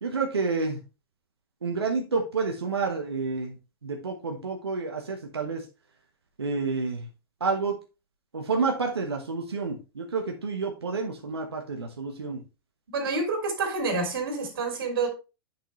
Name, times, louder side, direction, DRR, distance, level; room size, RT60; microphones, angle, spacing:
voice 1, 0.0-0.8 1.6-3.5 3.8-5.6 6.4-7.0 7.4-7.7 8.3-12.4, right 4 dB, 85° right, 1 dB, 1.2 m, -29 dB
voice 2, 12.9-15.1, right 3 dB, 70° right, 2 dB, 3.0 m, -28 dB
8.2 x 6.1 x 3.1 m, 0.30 s
hypercardioid pair, 105°, 13 cm